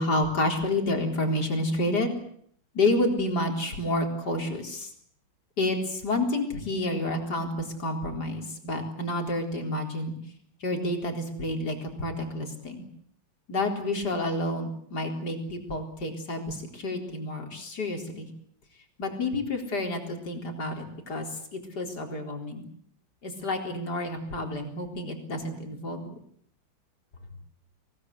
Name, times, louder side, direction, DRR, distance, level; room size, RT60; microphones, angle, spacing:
voice 1, 0.0-2.1 2.7-4.9 5.6-10.2 10.6-12.9 13.5-18.3 19.0-22.7 23.2-26.1, left 1 dB, 55° left, 4 dB, 4.6 m, -29 dB
24.5 x 18.0 x 9.7 m, 0.65 s
omnidirectional pair, 2.1 m